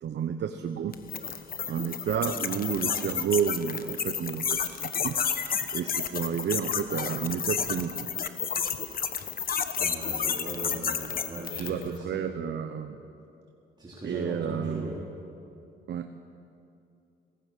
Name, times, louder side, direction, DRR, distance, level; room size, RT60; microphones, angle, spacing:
voice 1, 0.0-1.0 1.2-8.2 11.5-13.0 14.0-14.9 15.9-16.1, right 8 dB, 60° right, 7 dB, 1.0 m, -31 dB
sound 1, 0.9-11.9, left 7 dB, 45° left, 1.2 m, -31 dB
voice 2, 9.8-12.4 13.8-15.0, right 1 dB, 20° right, -5 dB, 4.0 m, -39 dB
19.0 x 18.0 x 7.6 m, 2.6 s
cardioid pair, 90°, 20 cm